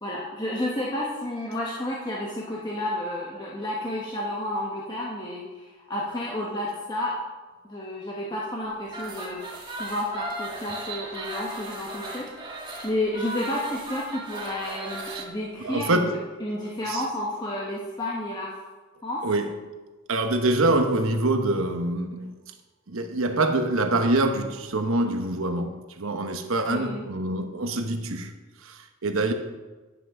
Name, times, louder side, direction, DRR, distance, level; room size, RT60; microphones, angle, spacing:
voice 1, 0.0-7.2 7.7-9.4 9.8-18.5 19.0-19.2 26.7-27.0, left 1 dB, 20° left, -4 dB, 1.0 m, -31 dB
sound 1, 8.9-15.3, right 2 dB, 20° right, 1.7 m, -36 dB
voice 2, 15.6-16.2 16.9-17.0 19.2-19.5 20.1-22.4 22.9-28.3 28.6-29.3, right 2 dB, 70° right, 6 dB, 1.0 m, -25 dB
10.0 x 5.9 x 6.0 m, 1.3 s
head